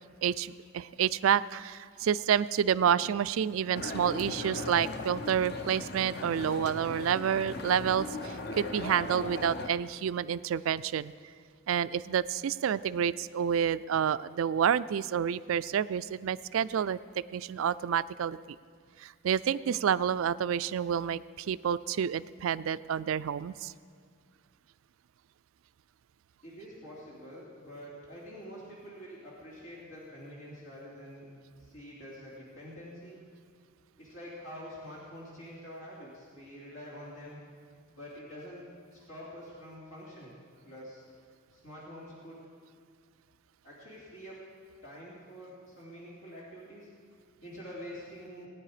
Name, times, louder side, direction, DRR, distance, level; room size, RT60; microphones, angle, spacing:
voice 1, 0.2-11.1 11.7-17.0 17.3-18.4 19.0-23.7, right 8 dB, 80° right, 17 dB, 0.4 m, -29 dB
sound 1, 3.7-9.7, left 2 dB, 50° left, 0.8 m, -38 dB
voice 2, 26.4-31.3 31.6-33.2 34.0-37.4 37.9-38.6 38.9-40.4 40.7-41.0 41.5-42.4 43.6-44.4 44.8-46.9 47.4-48.5, equal, 80° left, -6 dB, 2.9 m, -46 dB
18.5 x 9.6 x 4.9 m, 2.1 s
head